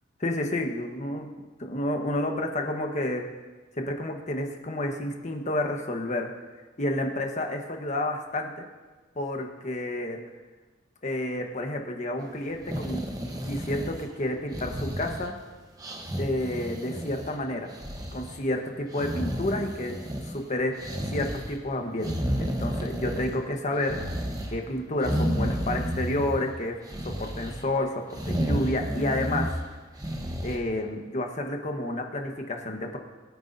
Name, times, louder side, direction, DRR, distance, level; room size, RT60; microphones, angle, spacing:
voice 1, 0.2-1.3 1.6-3.2 3.8-6.3 6.8-8.6 9.2-10.2 11.0-13.1 13.5-15.3 16.2-17.7 18.1-20.0 20.3-20.7 21.1-22.1 22.4-24.0 24.5-26.8 27.0-29.5 30.4-33.0, left 1 dB, 35° left, 3 dB, 1.2 m, -30 dB
sound 1, 12.5-14.2 14.5-15.4 15.8-17.4 17.7-18.4 18.9-20.4 20.8-21.6 22.0-23.5 23.8-24.5 25.0-26.5 26.9-27.6 28.1-29.6 30.0-30.6, equal, 20° right, 1.1 m, -31 dB
22.0 x 9.4 x 2.7 m, 1.3 s
head